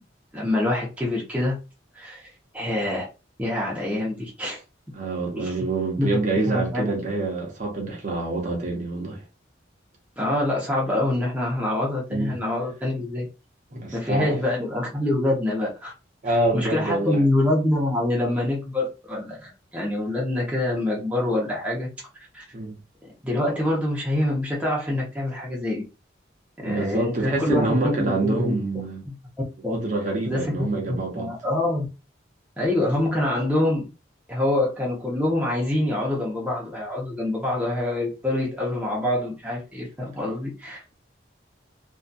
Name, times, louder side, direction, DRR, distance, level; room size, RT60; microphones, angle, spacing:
voice 1, 0.3-1.6 1.9-2.3 2.5-3.1 3.4-4.6 5.4-5.6 6.0-6.2 6.4-6.9 10.2-13.3 13.9-15.9 16.2-21.9 22.3-22.5 23.2-25.8 26.6-28.5 29.1-29.2 29.6-29.7 30.2-31.9 32.6-33.8 34.3-40.9, left 1 dB, 10° right, 0.6 m, -25 dB
voice 2, 4.9-9.2 12.1-12.3 13.7-14.4 16.2-17.2 22.5-22.8 26.6-29.0 29.7-31.3, right 2 dB, 40° right, 0.7 m, -26 dB
2.6 x 2.3 x 2.2 m
head